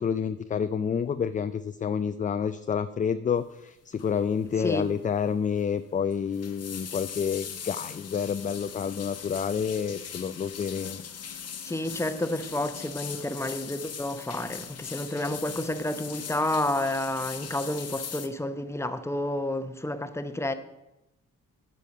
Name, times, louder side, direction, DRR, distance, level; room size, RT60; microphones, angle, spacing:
voice 1, 0.0-11.0, left 7 dB, 25° left, 0.4 m, -29 dB
sound 1, 4.0-4.2 4.5-4.8 5.1-5.2 6.1-18.3, left 7 dB, 50° left, 1.0 m, -40 dB
voice 2, 11.6-20.5, left 1 dB, 10° left, 0.9 m, -30 dB
9.9 x 5.6 x 5.4 m
supercardioid pair, 65°, 33 cm